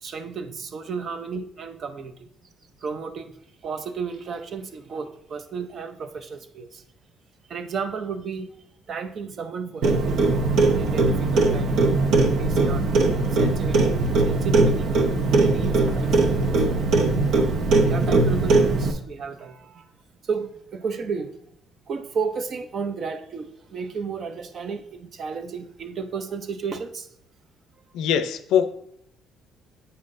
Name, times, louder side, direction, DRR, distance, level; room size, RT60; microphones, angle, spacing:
voice 1, 0.0-2.3 2.8-3.3 3.6-6.8 7.5-8.5 8.9-11.7 12.0-12.9 13.3-14.9 15.3-16.6 17.8-19.9 20.2-21.4 21.9-27.1, right 5 dB, 40° right, 9 dB, 0.5 m, -33 dB
Clock, 9.8-18.9, right 3 dB, 65° right, 0.8 m, -20 dB
voice 2, 27.9-28.7, left 8 dB, 80° left, 11 dB, 0.5 m, -22 dB
8.4 x 5.7 x 2.6 m, 0.71 s
cardioid pair, 165°, 0 cm